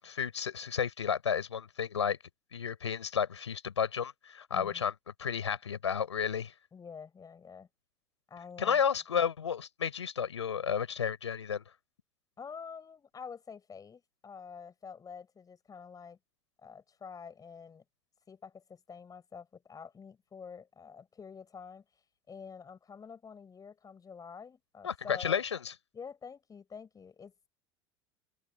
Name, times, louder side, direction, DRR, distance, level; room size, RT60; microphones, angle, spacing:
voice 1, 0.0-2.2 2.5-4.9 5.2-6.5 8.6-11.6 24.8-25.7, left 7 dB, 80° left, 5.4 m, -32 dB
voice 2, 4.5-4.8 6.7-7.7 8.3-8.8 12.4-16.2 16.6-17.8 18.3-21.8 22.3-25.4 25.9-27.5, left 6 dB, 25° left, 6.5 m, -48 dB
open air
figure-of-eight pair, 75°, 15 cm